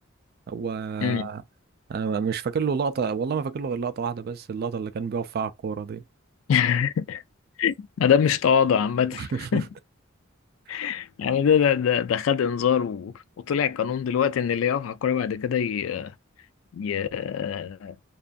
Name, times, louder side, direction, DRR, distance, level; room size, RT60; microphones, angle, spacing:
voice 1, 0.5-1.4 1.9-6.0 9.1-9.7 10.7-10.8, right 6 dB, 50° right, 0.3 m, -29 dB
voice 2, 1.0-1.3 6.5-7.2 7.6-9.7 10.7-16.1 16.7-18.0, left 8 dB, 75° left, 0.3 m, -24 dB
2.5 x 2.4 x 2.3 m
head